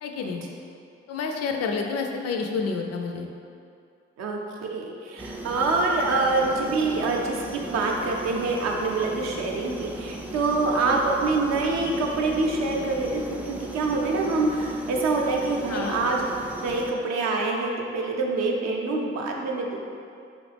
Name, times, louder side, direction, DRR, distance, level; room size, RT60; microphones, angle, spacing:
voice 1, 0.0-0.4 1.1-3.3 15.7-16.0, left 4 dB, 60° left, 3 dB, 0.4 m, -29 dB
voice 2, 4.2-16.2 16.6-19.8, right 3 dB, 65° right, 0 dB, 0.5 m, -25 dB
sound 1, 5.2-16.9, right 1 dB, 5° right, 0.3 m, -37 dB
3.1 x 2.4 x 3.3 m, 2.4 s
hypercardioid pair, 45°, 29 cm